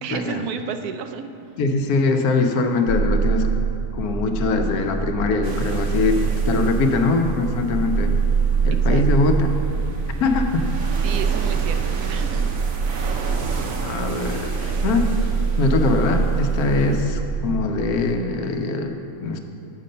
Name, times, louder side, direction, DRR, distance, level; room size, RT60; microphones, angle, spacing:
voice 1, 0.0-1.3 8.9-9.0 11.0-11.8 12.1-12.5 16.6-16.9, right 7 dB, 90° right, 7 dB, 1.1 m, -32 dB
voice 2, 1.6-3.5 3.9-8.1 8.6-9.5 10.2-10.6 13.8-15.1 15.6-19.4, left 3 dB, 85° left, 5 dB, 1.2 m, -22 dB
sound 1, 2.9-18.0, right 6 dB, 40° right, 1.0 m, -24 dB
sound 2, 5.4-17.0, right 4 dB, 65° right, 1.1 m, -34 dB
8.1 x 5.2 x 5.4 m, 2.8 s
omnidirectional pair, 1.6 m